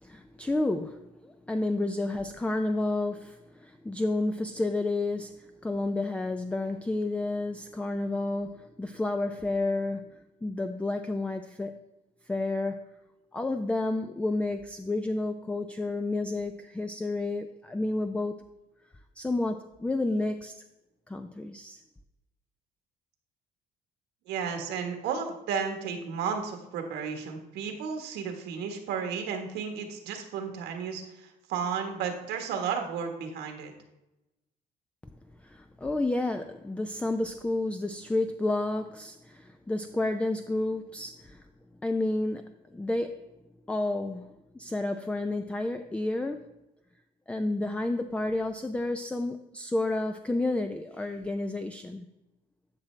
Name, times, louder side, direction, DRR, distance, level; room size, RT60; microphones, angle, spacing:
voice 1, 0.0-11.8 12.3-12.9 13.3-18.4 19.2-20.5 21.1-21.8 35.4-41.4 41.8-43.3 43.7-46.5 47.3-52.1, left 2 dB, 5° left, 7 dB, 0.4 m, -31 dB
voice 2, 24.3-33.7, right 6 dB, 85° right, 4 dB, 1.4 m, -33 dB
11.5 x 6.0 x 3.2 m, 0.96 s
cardioid pair, 110°, 17 cm